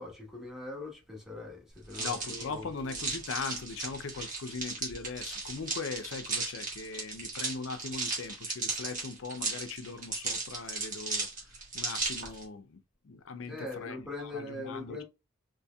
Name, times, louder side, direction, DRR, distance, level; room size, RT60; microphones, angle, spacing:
voice 1, 0.0-2.7 13.5-15.0, left 2 dB, ahead, 1.1 m, -41 dB
sound 1, 1.9-12.4, right 3 dB, 35° right, 1.4 m, -36 dB
voice 2, 2.0-11.3 11.7-15.0, left 4 dB, 65° left, 0.5 m, -40 dB
4.2 x 3.0 x 2.3 m
head